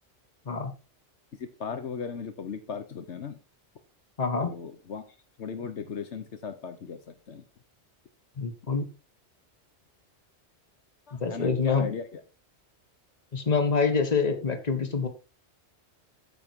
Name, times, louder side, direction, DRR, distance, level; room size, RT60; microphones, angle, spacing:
voice 1, 1.4-3.4 4.4-5.0 5.4-7.4 11.1-12.2, left 6 dB, 75° left, 9 dB, 1.3 m, -37 dB
voice 2, 4.2-4.5 8.4-8.9 11.2-11.9 13.3-15.1, left 5 dB, 35° left, 7 dB, 1.6 m, -26 dB
8.8 x 7.5 x 4.5 m, 0.32 s
omnidirectional pair, 1.2 m